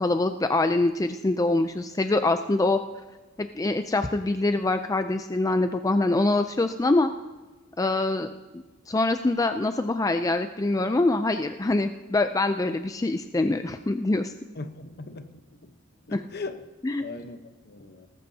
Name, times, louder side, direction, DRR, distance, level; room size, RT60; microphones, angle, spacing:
voice 1, 0.0-2.8 3.4-7.1 7.8-8.3 8.9-14.3 16.1-16.2 16.8-17.0, left 2 dB, 15° left, 8 dB, 0.4 m, -24 dB
voice 2, 14.6-15.7 16.1-16.7 17.0-18.1, left 3 dB, 55° left, 8 dB, 1.0 m, -39 dB
19.0 x 14.5 x 2.8 m, 1.3 s
head